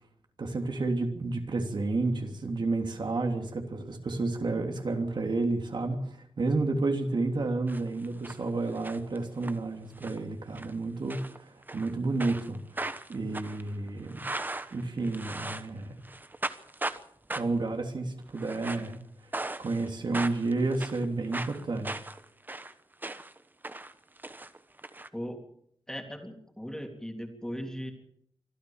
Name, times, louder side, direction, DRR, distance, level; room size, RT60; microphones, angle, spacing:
voice 1, 0.4-14.2 14.7-15.9 17.3-19.0 19.6-22.0, right 3 dB, 60° right, 4 dB, 3.1 m, -31 dB
sound 1, 7.7-8.4 8.7-9.5 10.0-10.2 10.5-10.7 11.1-11.9 12.2-15.8 16.0-17.0 17.3-17.7 18.3-19.0 19.3-19.9 20.1-23.4 23.6-25.1, right 2 dB, 20° right, 1.1 m, -38 dB
voice 2, 25.9-27.9, equal, 5° left, 4 dB, 3.3 m, -38 dB
25.0 x 14.5 x 7.2 m, 0.67 s
wide cardioid pair, 125°, 9 cm